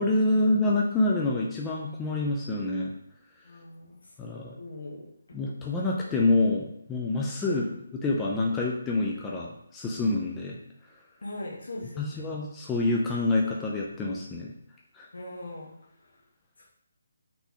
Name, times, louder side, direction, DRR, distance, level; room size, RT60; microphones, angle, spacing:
voice 1, 0.0-2.9 4.2-4.6 5.3-7.6 7.9-10.6 12.0-14.5 14.9-15.1, left 2 dB, 10° left, -3 dB, 0.4 m, -27 dB
voice 2, 3.4-3.9 4.6-5.4 7.4-7.7 11.2-12.3 15.1-15.7, left 2 dB, 70° left, -2 dB, 0.8 m, -39 dB
3.9 x 3.0 x 3.7 m, 0.75 s
figure-of-eight pair, 155°, 0 cm